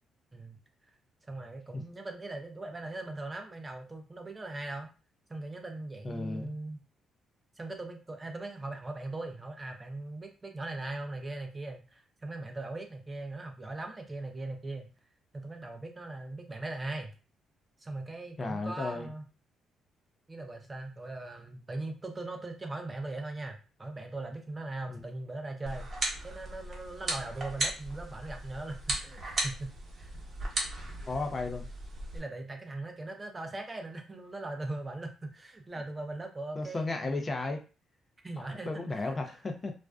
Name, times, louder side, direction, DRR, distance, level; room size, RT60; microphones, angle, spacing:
voice 1, 1.2-4.9 5.3-6.8 7.6-14.9 15.3-17.1 17.8-19.2 20.3-30.1 32.1-37.3 38.2-39.3, right 2 dB, 25° right, 4 dB, 0.5 m, -40 dB
voice 2, 6.0-6.5 18.4-19.1 24.9-25.0 31.0-31.7 36.6-37.6 38.5-39.7, left 3 dB, 30° left, 4 dB, 0.4 m, -34 dB
sound 1, 25.6-32.2, right 1 dB, 45° right, 0.9 m, -36 dB
2.4 x 2.3 x 2.2 m, 0.33 s
cardioid pair, 90°, 0 cm